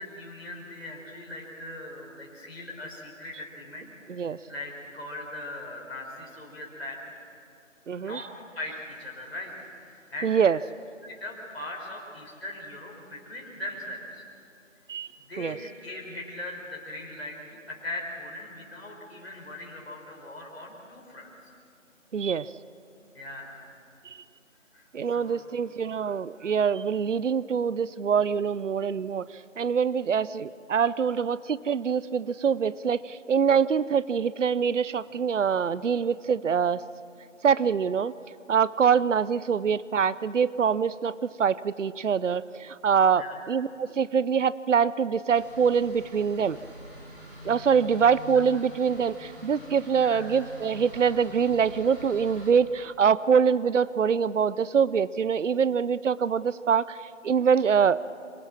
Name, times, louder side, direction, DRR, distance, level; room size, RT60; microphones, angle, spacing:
voice 1, 0.0-7.0 8.0-8.3 8.5-10.5 11.0-14.2 15.3-21.3 23.1-23.8 24.7-25.4 43.1-43.4 48.3-48.4 50.0-50.3, left 1 dB, 55° left, -2 dB, 4.9 m, -40 dB
voice 2, 7.9-8.3 10.2-10.6 14.9-15.1 15.4-15.6 22.1-22.5 24.0-24.2 24.9-36.8 37.4-38.1 38.5-46.6 47.4-58.0, right 6 dB, 70° right, 18 dB, 0.6 m, -24 dB
sound 1, 45.3-52.5, left 1 dB, 50° right, 5.8 m, -45 dB
26.5 x 18.0 x 7.4 m, 2.5 s
figure-of-eight pair, 175°, 39 cm